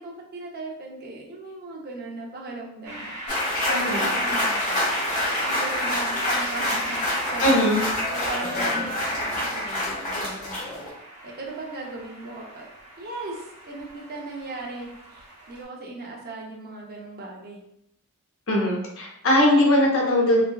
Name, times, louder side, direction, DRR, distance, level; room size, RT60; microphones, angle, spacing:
voice 1, 0.0-3.2 3.7-4.9 5.5-10.6 11.2-12.7 13.0-17.6, right 2 dB, 45° right, -1 dB, 0.6 m, -38 dB
sound 1, 2.8-15.6, right 1 dB, 90° right, 0.9 m, -38 dB
sound 2, 3.3-10.9, left 1 dB, 35° left, 0.9 m, -26 dB
voice 2, 3.7-4.0 7.4-7.8 18.5-20.4, left 1 dB, 60° left, -2 dB, 0.8 m, -20 dB
3.3 x 2.2 x 2.2 m, 0.77 s
head